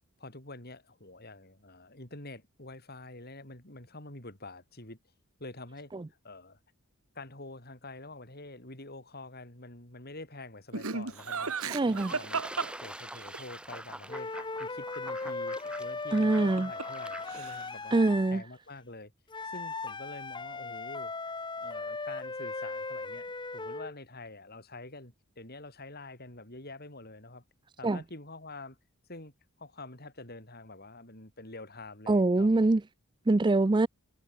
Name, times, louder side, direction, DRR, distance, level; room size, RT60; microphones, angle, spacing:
voice 1, 0.2-5.0 5.4-5.9 6.2-6.6 7.1-12.4 12.8-14.3 14.6-17.9 18.3-19.1 19.4-21.1 21.6-27.4 27.8-28.8 29.1-29.3 29.6-32.5, left 2 dB, 45° left, 6.6 m, -46 dB
Laughter, 10.7-13.4 16.2-17.0 17.3-17.8, right 5 dB, 85° right, 2.0 m, -35 dB
Fowl / Bird / Water, 11.1-17.7, right 1 dB, 5° right, 5.5 m, -46 dB
voice 2, 11.7-12.1 16.1-16.7 17.9-18.4 27.8-28.0 32.1-32.8 33.3-33.9, right 2 dB, 20° right, 0.4 m, -24 dB
sound 1, 14.1-18.4 19.3-23.9, left 3 dB, 20° left, 1.2 m, -38 dB
head